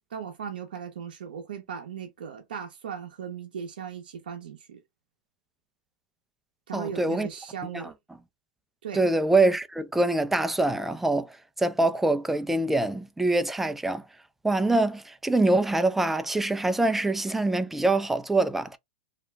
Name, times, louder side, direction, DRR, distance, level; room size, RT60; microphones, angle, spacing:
voice 1, 0.1-4.8 6.7-7.9 8.8-9.0, right 7 dB, 80° right, 0.6 m, -37 dB
voice 2, 6.7-7.3 7.7-7.9 8.9-14.0 14.4-18.8, right 2 dB, 5° right, 0.3 m, -24 dB
2.4 x 2.2 x 3.1 m
hypercardioid pair, 115°, 5 cm